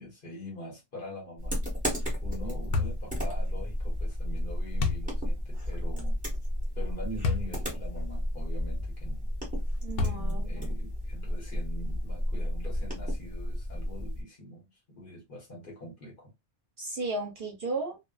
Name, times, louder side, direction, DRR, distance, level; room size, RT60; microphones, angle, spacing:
voice 1, 0.0-1.6 2.2-6.2 6.7-9.3 10.0-16.3, equal, 45° left, 1.2 m, -44 dB
sound 1, 1.4-14.2, equal, 5° right, 1.2 m, -32 dB
sound 2, 2.7-3.1 4.8-5.1 7.2-7.5 8.1-8.2 10.0-10.5, left 4 dB, 90° left, 1.0 m, -28 dB
voice 2, 9.8-10.7 16.8-18.0, right 2 dB, 50° right, 0.8 m, -34 dB
2.5 x 2.4 x 2.3 m
omnidirectional pair, 1.2 m